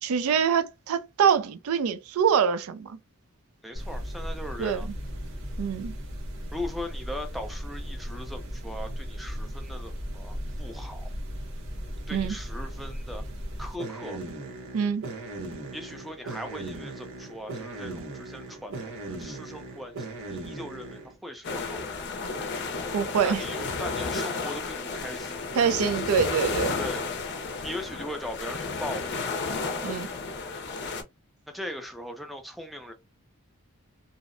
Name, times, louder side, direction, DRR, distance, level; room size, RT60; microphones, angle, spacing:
voice 1, 0.0-3.0 4.6-4.8 5.6-6.0 12.1-12.3 14.7-15.0 22.9-23.4 25.6-26.7 29.8-30.1, right 7 dB, 85° right, 0.4 m, -25 dB
voice 2, 3.6-4.9 6.5-11.1 12.1-13.2 13.6-14.2 15.7-22.0 23.2-25.4 26.8-27.1 27.6-29.2 31.5-32.9, left 1 dB, ahead, 0.4 m, -39 dB
sound 1, 3.7-21.1, right 1 dB, 65° right, 0.8 m, -37 dB
sound 2, 21.4-31.0, left 4 dB, 55° left, 0.5 m, -32 dB
2.6 x 2.0 x 2.5 m
head